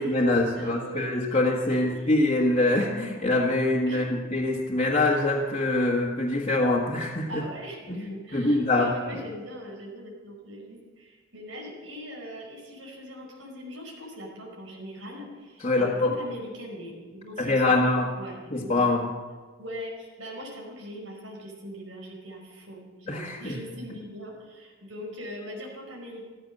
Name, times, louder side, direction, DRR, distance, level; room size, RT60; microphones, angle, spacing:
voice 1, 0.0-7.4 7.9-8.9 15.6-16.1 17.4-18.1 18.5-19.1 23.1-23.6, left 2 dB, 30° left, -4 dB, 1.7 m, -24 dB
voice 2, 0.6-1.4 1.7-2.1 3.9-4.1 7.3-17.8 18.2-18.7 19.6-26.3, equal, 75° right, -1 dB, 5.3 m, -41 dB
15.0 x 14.5 x 6.6 m, 1.4 s
head